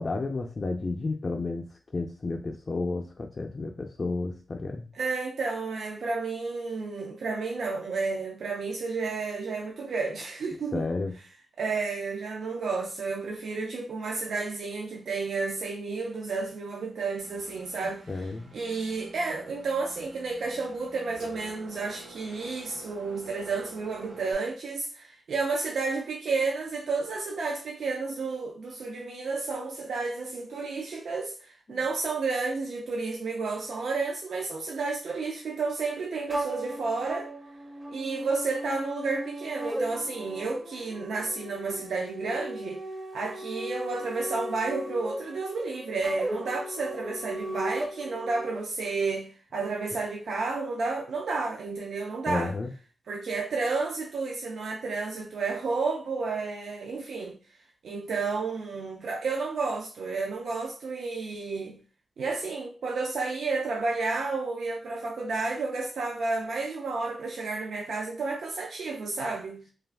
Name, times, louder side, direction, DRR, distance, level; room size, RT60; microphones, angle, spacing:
voice 1, 0.0-1.6 1.9-4.9 10.7-11.1 18.1-18.5 31.7-31.8 52.3-52.7, left 3 dB, 40° left, 0.3 m, -31 dB
voice 2, 4.9-10.9 11.6-37.3 37.9-42.8 43.1-52.5 53.1-57.4 57.8-61.8 62.2-69.6, right 4 dB, 85° right, 0.4 m, -31 dB
Engine, 17.2-24.3, right 2 dB, 65° right, 1.1 m, -49 dB
sound 1, 36.3-48.6, right 1 dB, 20° right, 0.4 m, -37 dB
2.4 x 2.3 x 3.3 m
cardioid pair, 90°, 0 cm